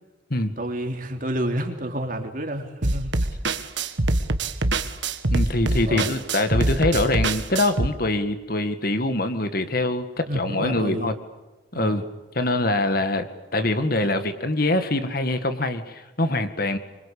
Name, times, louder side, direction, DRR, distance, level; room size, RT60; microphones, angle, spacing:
voice 1, 0.6-3.3 5.8-6.1 10.3-11.1 11.7-12.0, right 1 dB, 45° right, 4 dB, 3.5 m, -29 dB
sound 1, 2.8-7.9, right 2 dB, 65° right, 1.7 m, -24 dB
voice 2, 5.3-11.1 11.7-12.0 12.4-13.3 13.5-16.8, left 2 dB, 50° left, 9 dB, 2.0 m, -24 dB
26.0 x 25.0 x 8.5 m, 1.1 s
head